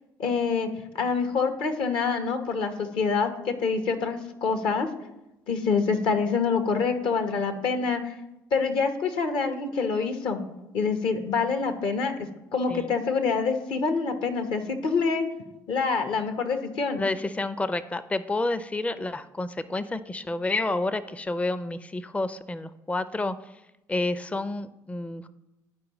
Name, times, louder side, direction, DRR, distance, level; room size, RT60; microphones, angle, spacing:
voice 1, 0.2-0.7 0.9-4.9 5.5-8.1 8.5-10.4 10.7-12.1 12.5-15.3 15.7-17.0, left 5 dB, 65° left, 7 dB, 1.0 m, -26 dB
voice 2, 17.0-23.4 23.9-25.3, left 2 dB, 15° left, 14 dB, 0.4 m, -29 dB
11.5 x 4.7 x 3.0 m, 0.92 s
hypercardioid pair, 50°, 10 cm